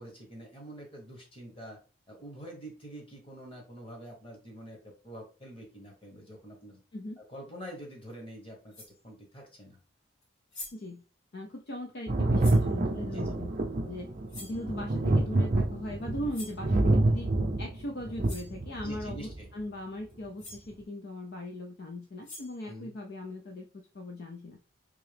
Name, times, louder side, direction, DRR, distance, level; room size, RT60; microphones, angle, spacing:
voice 1, 0.0-1.8 2.1-6.8 7.2-8.7 9.0-9.8 13.1-13.3 18.8-19.5 22.6-22.9, right 1 dB, 25° left, 0 dB, 1.2 m, -46 dB
sound 1, 8.1-8.2 8.7-9.0 10.2-10.3 10.5-10.9 12.4-12.7 14.3-14.6 16.3-16.6 17.9-18.0 18.2-18.6 20.1-20.2 20.4-20.7 22.0-22.7, left 2 dB, 90° left, 1.6 m, -45 dB
voice 2, 10.7-11.0 11.3-13.5 13.9-14.1 14.4-17.3 17.6-23.7 23.9-24.6, left 1 dB, 50° left, 1 dB, 0.4 m, -39 dB
Thunder, 12.1-19.4 20.5-20.6, right 2 dB, 40° right, 0.6 m, -27 dB
3.6 x 2.8 x 3.3 m, 0.34 s
head